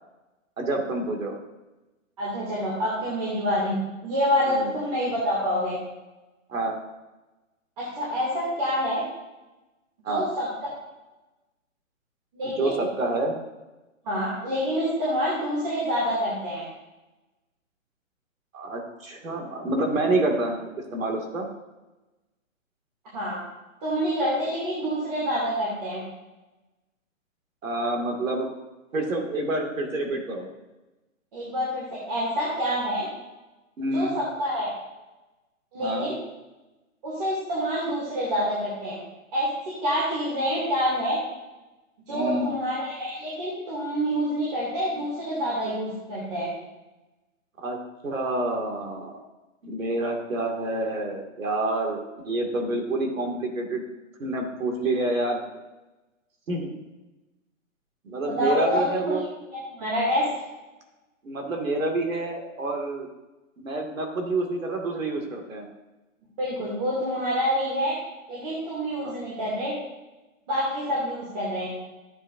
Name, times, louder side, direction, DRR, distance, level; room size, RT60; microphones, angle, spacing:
voice 1, 0.6-1.3 4.5-4.8 6.5-6.7 10.0-10.3 12.6-13.3 18.5-20.6 20.9-21.5 27.6-28.5 28.9-30.5 33.8-34.2 35.8-36.1 42.1-42.5 47.6-47.8 48.0-49.2 49.6-53.8 54.2-55.4 56.5-56.7 58.0-59.3 61.2-63.1 63.6-65.7 69.0-69.1, right 2 dB, 75° right, 2 dB, 2.5 m, -28 dB
voice 2, 2.2-3.8 4.0-5.8 7.8-9.0 10.1-10.5 12.3-12.7 14.0-16.6 23.1-23.4 23.8-26.0 31.3-33.1 33.9-34.7 35.7-36.1 37.0-39.0 39.3-41.2 42.1-46.5 58.3-59.2 59.5-60.5 66.4-67.9 68.3-69.7 70.5-71.7, equal, 30° right, -7 dB, 2.8 m, -27 dB
13.5 x 9.0 x 2.7 m, 1.1 s
hypercardioid pair, 170°, 40 cm